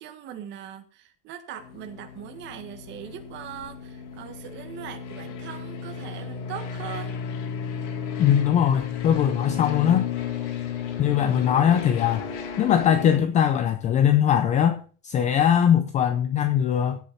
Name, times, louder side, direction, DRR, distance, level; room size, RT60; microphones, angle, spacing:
voice 1, 0.0-7.1, right 9 dB, 30° right, 1.7 m, -40 dB
sound 1, 1.6-13.2, left 8 dB, 75° left, 4.4 m, -33 dB
voice 2, 8.2-10.1 11.0-12.3 12.6-14.8 15.0-17.0, left 9 dB, 20° left, 0.5 m, -21 dB
16.0 x 8.2 x 4.2 m
cardioid pair, 175°, 36 cm